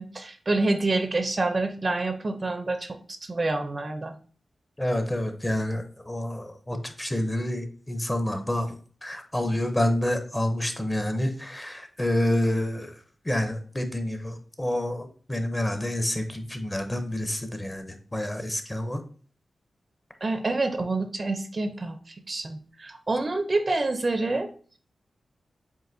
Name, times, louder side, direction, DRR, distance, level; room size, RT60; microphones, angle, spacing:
voice 1, 0.0-4.1 20.2-24.5, right 2 dB, 35° right, 7 dB, 0.4 m, -27 dB
voice 2, 4.8-8.8 9.0-13.0 13.2-19.0, left 1 dB, 15° left, 7 dB, 0.6 m, -28 dB
7.6 x 2.6 x 2.6 m, 0.43 s
wide cardioid pair, 105°, 0 cm